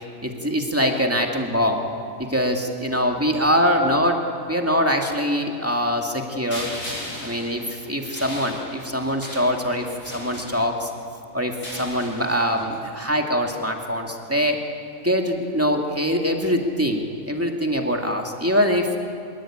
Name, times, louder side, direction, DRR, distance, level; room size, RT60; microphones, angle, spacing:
voice 1, 0.2-1.8 2.2-6.7 7.2-9.9 10.1-10.9 11.3-14.6 15.0-19.0, equal, 10° right, 2 dB, 2.2 m, -23 dB
sound 1, 6.5-11.0 11.5-12.8, equal, 45° left, 6.9 m, -37 dB
24.0 x 22.5 x 8.8 m, 2.6 s
omnidirectional pair, 1.4 m